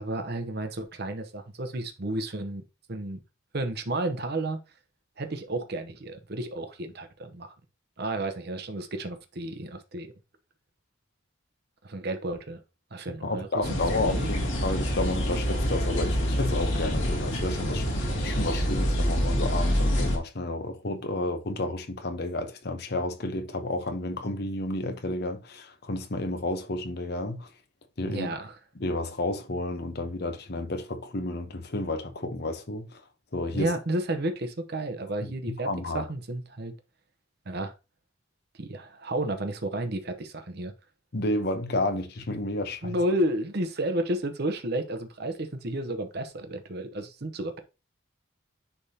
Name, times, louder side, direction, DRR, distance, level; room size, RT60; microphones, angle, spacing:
voice 1, 0.0-2.6 2.9-3.2 3.5-4.6 5.2-7.5 8.0-10.1 11.8-12.6 12.9-14.3 28.1-28.5 33.5-35.7 35.9-36.7 37.5-37.7 38.6-40.7 42.8-47.6, right 1 dB, 50° right, 0.8 m, -32 dB
voice 2, 13.2-27.5 28.0-28.3 28.8-33.0 33.3-33.7 35.2-35.3 35.6-36.0 41.1-43.0, left 2 dB, 55° left, 0.9 m, -31 dB
sound 1, 13.6-20.2, equal, 70° left, 2.0 m, -26 dB
9.9 x 3.5 x 2.8 m
head